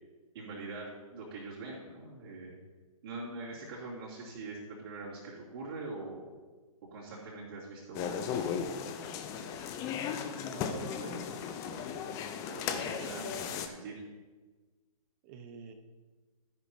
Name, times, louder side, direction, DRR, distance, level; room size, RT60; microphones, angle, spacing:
voice 1, 0.3-2.5 3.0-6.3 6.9-8.5 12.4-14.0, right 3 dB, 45° right, -8 dB, 2.8 m, -43 dB
sound 1, 7.9-13.7, left 7 dB, 15° left, 0.5 m, -36 dB
voice 2, 10.4-11.9 12.8-13.4 15.2-15.7, right 6 dB, 25° right, 6 dB, 1.0 m, -48 dB
12.5 x 10.5 x 2.8 m, 1.3 s
figure-of-eight pair, 140°, 18 cm